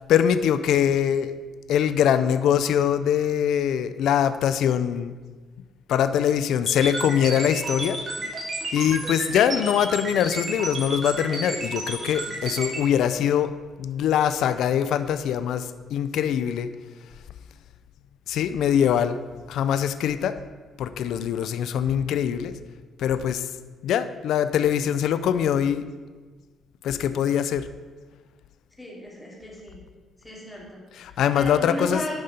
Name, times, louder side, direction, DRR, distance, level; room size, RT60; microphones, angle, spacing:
voice 1, 0.1-1.3 1.7-5.1 5.9-8.0 8.7-13.5 13.8-16.7 18.3-19.2 19.5-20.3 20.8-22.5 23.0-23.4 23.8-25.8 26.8-27.6 30.9-32.0, left 9 dB, 80° left, 12 dB, 0.4 m, -23 dB
sound 1, 6.7-12.8, right 2 dB, 40° right, 2.4 m, -31 dB
voice 2, 28.8-29.8 30.2-32.2, equal, 10° left, -4 dB, 2.7 m, -35 dB
11.0 x 5.2 x 4.3 m, 1.4 s
cardioid pair, 90°, 0 cm